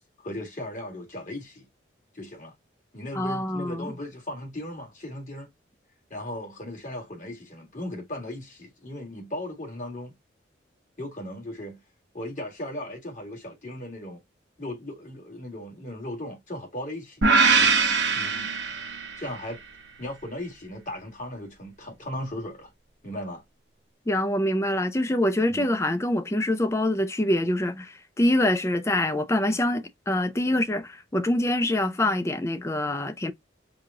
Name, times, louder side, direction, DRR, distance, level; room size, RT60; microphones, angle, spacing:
voice 1, 0.2-1.7 2.1-2.5 2.9-5.5 6.1-10.1 11.0-11.8 12.1-14.2 14.6-17.7 18.1-18.5 19.2-19.6 20.0-22.7 23.0-23.4 25.5-25.7, left 1 dB, 40° left, 1.9 m, -37 dB
voice 2, 3.1-3.9 24.1-33.3, left 1 dB, 15° left, 0.5 m, -25 dB
sound 1, 17.2-19.4, right 4 dB, 65° right, 1.0 m, -22 dB
4.9 x 2.3 x 3.7 m
head